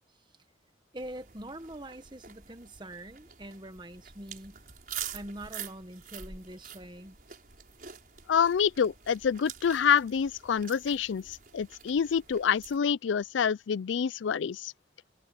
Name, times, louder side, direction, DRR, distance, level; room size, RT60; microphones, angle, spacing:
voice 1, 0.9-4.6 5.1-7.2, right 1 dB, 25° right, 1.5 m, -44 dB
sound 1, 1.0-12.8, right 8 dB, 50° right, 6.0 m, -46 dB
voice 2, 8.3-14.7, left 7 dB, 85° left, 0.4 m, -27 dB
head